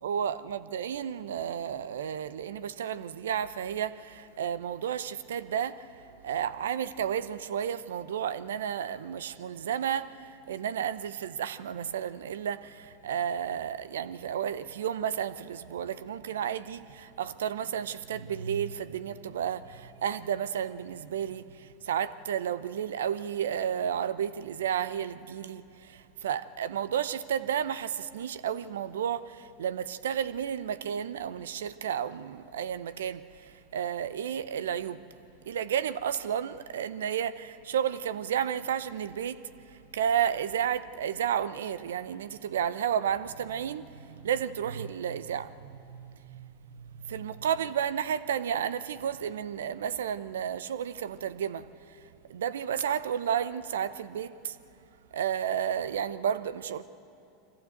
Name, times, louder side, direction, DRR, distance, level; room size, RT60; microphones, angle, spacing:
voice 1, 0.0-5.9 6.2-35.0 35.4-39.4 39.9-52.0 52.3-54.6 55.1-56.8, right 9 dB, 80° right, 0.7 m, -32 dB
24.0 x 15.0 x 8.0 m
hypercardioid pair, 90°, 0 cm